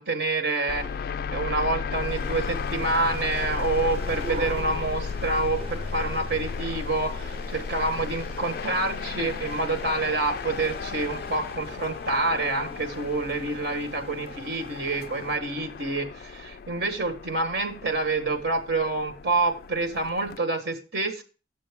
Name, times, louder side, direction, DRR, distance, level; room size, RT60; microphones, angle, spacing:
voice 1, 0.0-21.2, right 3 dB, 60° right, 5 dB, 1.3 m, -27 dB
sound 1, 0.7-20.4, left 5 dB, 55° left, 0.3 m, -35 dB
sound 2, 1.9-15.4, right 2 dB, 35° right, 0.7 m, -43 dB
8.8 x 7.0 x 3.6 m, 0.34 s
head